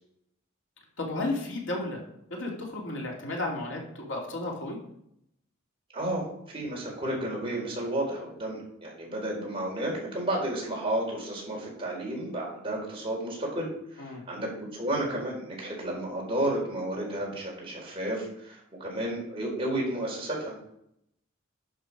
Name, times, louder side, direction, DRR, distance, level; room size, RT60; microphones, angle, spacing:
voice 1, 1.0-2.0 2.3-4.8 14.0-14.2, left 2 dB, 65° left, -1 dB, 2.7 m, -33 dB
voice 2, 5.9-20.5, right 1 dB, 25° right, -3 dB, 4.3 m, -32 dB
11.5 x 7.1 x 4.9 m, 0.74 s
head